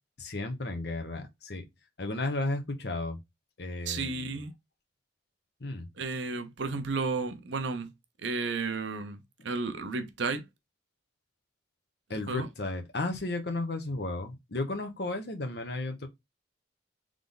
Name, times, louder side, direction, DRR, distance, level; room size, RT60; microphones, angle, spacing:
voice 1, 0.2-1.7 2.0-3.2 3.6-4.3 5.6-5.9 12.1-16.1, left 2 dB, 60° left, 1.0 m, -34 dB
voice 2, 3.9-4.5 6.0-7.9 8.2-10.4 12.3-12.5, right 4 dB, 75° right, 0.8 m, -33 dB
3.7 x 3.4 x 3.9 m
head